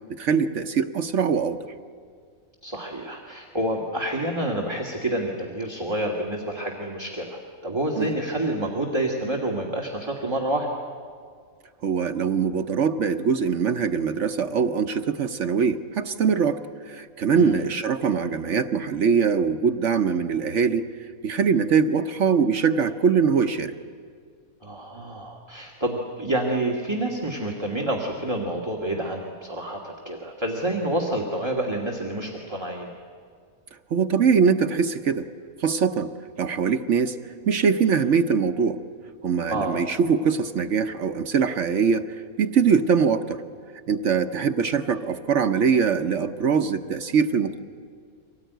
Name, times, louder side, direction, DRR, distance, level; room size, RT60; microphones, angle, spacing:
voice 1, 0.1-1.6 8.0-8.1 11.8-16.6 16.9-20.9 21.2-23.7 33.9-35.3 35.6-36.1 36.4-37.2 37.5-38.8 39.2-43.4 43.9-47.6, right 6 dB, 60° right, 8 dB, 1.1 m, -22 dB
voice 2, 2.6-10.7 17.3-17.6 24.6-32.9 39.5-39.8, right 1 dB, 20° right, -1 dB, 1.8 m, -28 dB
24.5 x 18.0 x 9.2 m, 2.1 s
omnidirectional pair, 1.5 m